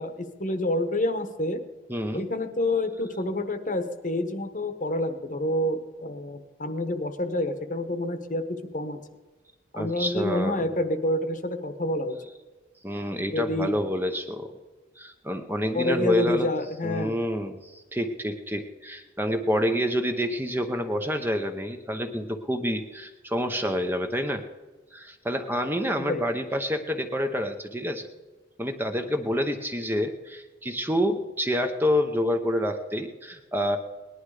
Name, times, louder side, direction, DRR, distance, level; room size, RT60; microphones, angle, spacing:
voice 1, 0.0-1.6 2.1-9.0 9.7-12.2 13.3-13.7 15.7-17.1 26.0-26.2, left 1 dB, 45° left, 9 dB, 1.2 m, -28 dB
voice 2, 1.9-2.2 9.7-10.7 12.8-14.5 15.0-16.5 16.8-24.4 24.9-28.1 28.6-33.8, equal, 10° right, 6 dB, 0.9 m, -28 dB
19.0 x 11.0 x 4.9 m, 1.3 s
head